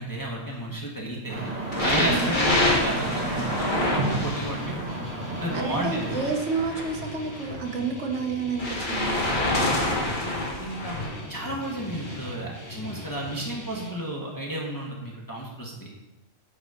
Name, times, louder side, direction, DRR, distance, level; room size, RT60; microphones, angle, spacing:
voice 1, 0.0-1.4 1.8-4.7 5.4-6.1 10.2-15.9, right 1 dB, 15° left, -3 dB, 1.3 m, -32 dB
sound 1, 1.3-6.3, right 2 dB, 40° right, 1.7 m, -31 dB
sound 2, 1.7-4.8 5.7-7.6 8.6-11.2 11.9-12.3 13.1-13.2, left 1 dB, 40° left, 1.9 m, -27 dB
Guitar, 4.1-13.9, left 1 dB, 60° left, 3.4 m, -40 dB
voice 2, 5.5-9.2, right 4 dB, 70° right, 3 dB, 1.4 m, -30 dB
9.1 x 4.1 x 6.6 m, 0.99 s
omnidirectional pair, 1.3 m